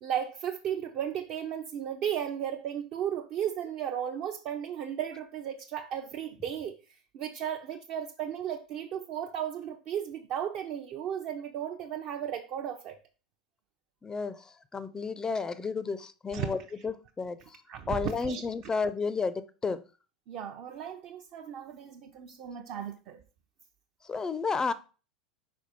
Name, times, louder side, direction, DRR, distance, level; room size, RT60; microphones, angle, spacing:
voice 1, 0.0-12.9 16.3-16.5 17.7-18.4 20.3-23.2, right 9 dB, 40° right, 0.7 m, -35 dB
voice 2, 14.0-14.4 14.7-16.6 16.8-17.4 17.9-19.8 24.1-24.7, left 4 dB, 15° left, 0.5 m, -31 dB
5.2 x 4.7 x 4.3 m
figure-of-eight pair, 85°, 4 cm